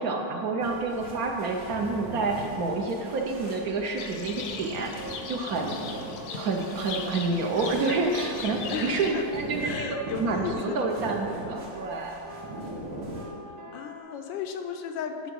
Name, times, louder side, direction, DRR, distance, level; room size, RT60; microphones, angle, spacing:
voice 1, 0.0-4.9 5.3-5.8 6.4-12.2, right 3 dB, 65° right, 2 dB, 1.0 m, -28 dB
sound 1, 0.6-13.3, right 1 dB, 80° right, 2.4 m, -41 dB
sound 2, 1.9-14.0, right 1 dB, 40° right, 1.3 m, -45 dB
Livestock farm animals working animals, 4.0-9.1, left 5 dB, 65° left, 1.1 m, -38 dB
voice 2, 8.7-9.3 9.6-11.1 13.5-15.3, left 7 dB, 85° left, 6 dB, 1.4 m, -35 dB
10.0 x 3.8 x 6.1 m, 2.7 s
omnidirectional pair, 2.0 m